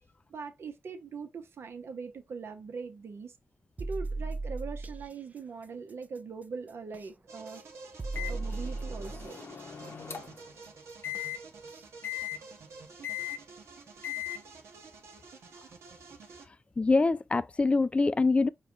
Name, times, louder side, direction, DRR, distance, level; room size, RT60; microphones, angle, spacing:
voice 1, 0.3-3.4 3.8-7.6 8.3-9.4, right 5 dB, 70° right, 0.8 m, -41 dB
sound 1, 3.8-5.1 6.9-7.1 8.0-9.3 11.1-11.3 11.8-11.9, right 3 dB, 35° right, 0.5 m, -36 dB
sound 2, 7.3-16.5, right 4 dB, 85° right, 1.0 m, -50 dB
Microwave oven, 8.2-10.5 11.0-11.4 12.0-12.4 13.0-13.4 14.0-14.4, left 12 dB, 60° left, 0.7 m, -38 dB
voice 2, 16.8-18.5, left 3 dB, 25° left, 0.3 m, -24 dB
4.9 x 2.2 x 3.7 m
cardioid pair, 60°, 4 cm